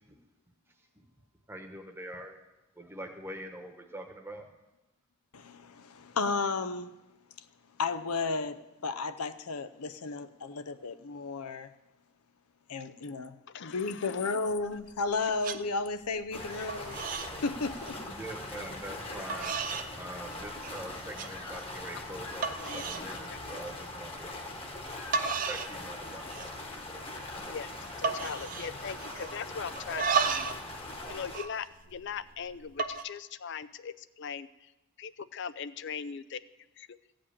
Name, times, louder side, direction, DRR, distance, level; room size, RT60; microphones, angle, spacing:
voice 1, 1.5-2.3 2.8-4.5 18.0-19.5 20.0-24.3 25.5-26.2, right 1 dB, 10° right, 4 dB, 1.1 m, -43 dB
voice 2, 5.3-6.9 7.8-11.7 12.7-13.3 13.6-17.0 17.4-18.0, left 4 dB, 90° left, 12 dB, 0.7 m, -33 dB
voice 3, 13.5-14.3 15.2-15.3 21.9-22.0 22.6-23.4 25.5-25.6 27.4-27.7 28.0-34.7 35.0-36.4 36.8-37.0, left 6 dB, 55° left, 15 dB, 0.4 m, -40 dB
sound 1, 14.5-15.1 15.4-15.6 16.0-16.4 16.7-17.3 17.6-18.0 18.7-18.8 19.3-19.9 20.3-20.8 21.2-21.3 21.8-21.9 22.4-23.1 23.5-23.7 24.8-24.9 25.1-25.8 26.1-26.6 26.9-27.0 27.3-27.6 28.0-29.4 29.8-30.6 30.9-32.2 32.7-33.0, right 5 dB, 40° right, 0.5 m, -33 dB
sound 2, 16.3-31.4, left 2 dB, 25° left, 1.2 m, -41 dB
15.0 x 5.2 x 8.6 m, 1.0 s
head